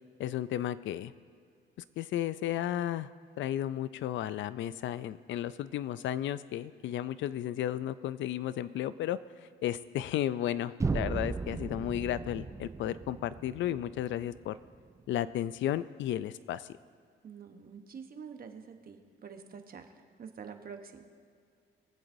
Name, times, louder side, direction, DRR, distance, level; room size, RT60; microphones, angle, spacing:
voice 1, 0.2-1.1 2.0-3.1 3.4-14.6 15.1-16.7, left 12 dB, 70° left, 16 dB, 0.4 m, -33 dB
sound 1, 10.8-14.8, right 4 dB, 15° right, 0.3 m, -36 dB
voice 2, 17.2-19.8 20.2-21.0, right 6 dB, 50° right, 6 dB, 1.0 m, -47 dB
23.0 x 7.8 x 2.7 m, 2.1 s
cardioid pair, 90°, 20 cm